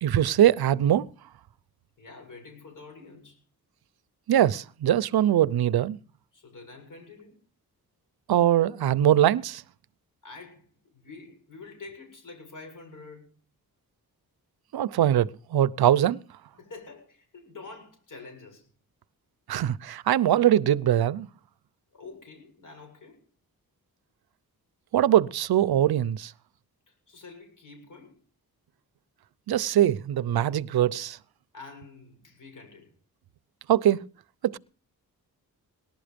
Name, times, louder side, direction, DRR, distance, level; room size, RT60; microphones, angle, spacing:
voice 1, 0.0-1.1 4.3-6.0 8.3-9.6 14.7-16.2 19.5-21.3 24.9-26.3 29.5-31.2 33.7-34.0 34.4-34.6, right 11 dB, 85° right, 0.7 m, -22 dB
voice 2, 2.0-3.4 6.3-7.4 10.2-13.3 16.6-18.7 21.9-23.2 26.9-28.2 31.5-32.9, left 3 dB, 55° left, 7.5 m, -47 dB
19.0 x 12.0 x 5.2 m
cardioid pair, 95°, 36 cm